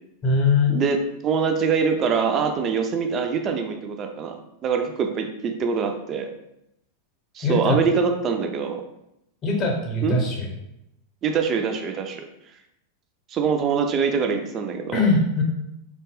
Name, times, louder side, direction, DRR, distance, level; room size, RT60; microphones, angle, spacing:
voice 1, 0.2-0.7 7.4-7.8 9.4-10.5 14.9-15.4, left 3 dB, 30° left, 0 dB, 0.7 m, -21 dB
voice 2, 1.2-6.3 7.3-8.8 10.0-10.2 11.2-12.2 13.3-15.1, right 6 dB, 30° right, 5 dB, 0.3 m, -24 dB
2.7 x 2.2 x 3.0 m, 0.83 s
figure-of-eight pair, 90°, 0 cm